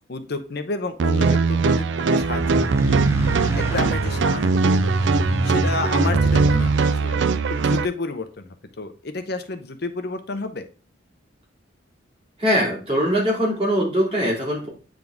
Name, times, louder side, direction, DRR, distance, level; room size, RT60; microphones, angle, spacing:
voice 1, 0.1-1.9 2.1-3.1 3.6-5.1 5.4-10.6, left 3 dB, 55° left, 8 dB, 0.8 m, -31 dB
sound 1, 1.0-7.8, right 4 dB, 65° right, 0.4 m, -20 dB
sound 2, 2.2-6.8, right 1 dB, 15° right, 0.6 m, -27 dB
voice 2, 12.4-14.7, equal, 30° right, -3 dB, 2.8 m, -21 dB
9.1 x 3.8 x 3.6 m, 0.35 s
head